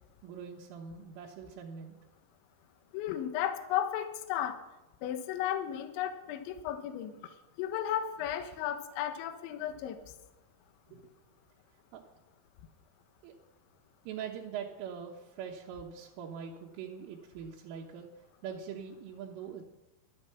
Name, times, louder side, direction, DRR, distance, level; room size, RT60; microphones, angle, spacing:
voice 1, 0.2-2.0 10.9-11.0 11.9-12.0 13.2-13.3 14.1-19.6, right 7 dB, 80° right, -2 dB, 3.8 m, -43 dB
voice 2, 2.9-4.6 5.0-7.1 7.6-10.0, left 10 dB, 75° left, 8 dB, 3.3 m, -34 dB
15.0 x 12.0 x 5.9 m, 0.98 s
omnidirectional pair, 5.7 m